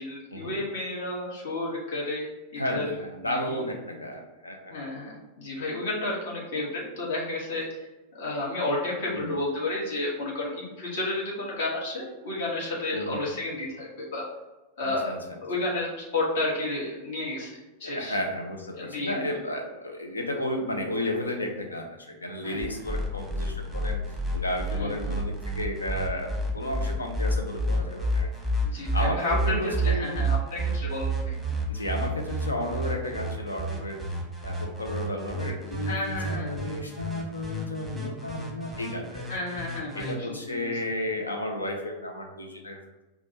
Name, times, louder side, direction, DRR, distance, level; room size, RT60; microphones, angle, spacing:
voice 1, 0.0-2.9 3.2-3.6 4.7-7.8 8.1-14.2 14.8-15.1 15.4-17.5 17.8-18.2 18.7-19.2 22.4-22.8 24.7-25.1 28.6-31.3 35.9-36.6 39.3-40.7, left 2 dB, 55° left, -4 dB, 1.4 m, -31 dB
voice 2, 2.6-4.7 9.1-9.4 12.9-13.2 14.8-15.2 17.8-24.0 24.3-28.3 28.9-29.2 29.4-30.2 31.7-34.0 34.4-39.3 39.9-43.0, left 1 dB, 80° left, 3 dB, 0.6 m, -33 dB
sound 1, 22.6-40.1, right 1 dB, ahead, 1.0 m, -30 dB
5.0 x 2.3 x 4.1 m, 1.1 s
figure-of-eight pair, 90°, 0 cm